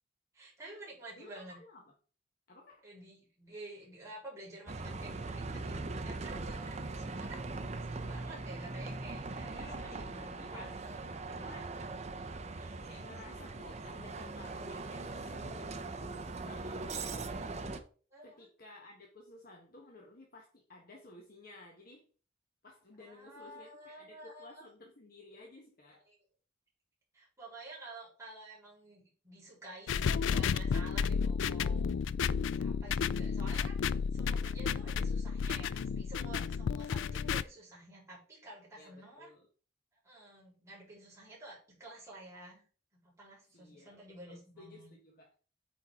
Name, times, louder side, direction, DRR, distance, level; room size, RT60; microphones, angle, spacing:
voice 1, 0.3-1.6 2.8-7.5 7.8-11.5 12.5-12.7 18.1-18.5 23.0-24.6 26.1-26.2 27.1-32.0 32.4-39.3 40.0-42.6 42.9-44.9, right 2 dB, 15° right, -6 dB, 3.9 m, -51 dB
voice 2, 1.1-1.8 2.5-2.9 9.5-10.7 11.4-11.7 12.8-17.6 18.2-22.0 22.6-26.0 38.8-39.5 43.5-45.3, left 2 dB, 50° left, 0 dB, 1.3 m, -55 dB
Bus, 4.7-17.8, right 3 dB, 35° right, 0.7 m, -41 dB
sound 1, 29.9-37.4, left 6 dB, 85° left, 0.3 m, -32 dB
8.8 x 4.2 x 3.7 m, 0.40 s
head